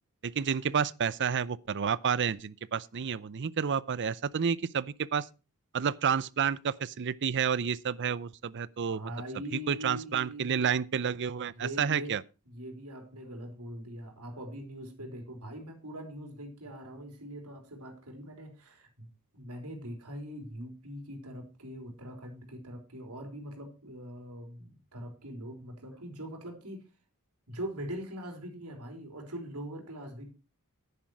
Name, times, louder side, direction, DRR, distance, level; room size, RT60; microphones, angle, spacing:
voice 1, 0.2-5.3 5.7-9.1 9.7-12.2, right 7 dB, 55° right, 0.5 m, -30 dB
voice 2, 8.9-10.8 11.6-12.2 12.5-26.8 27.5-30.3, equal, 85° right, 3.8 m, -42 dB
10.0 x 10.0 x 4.7 m
head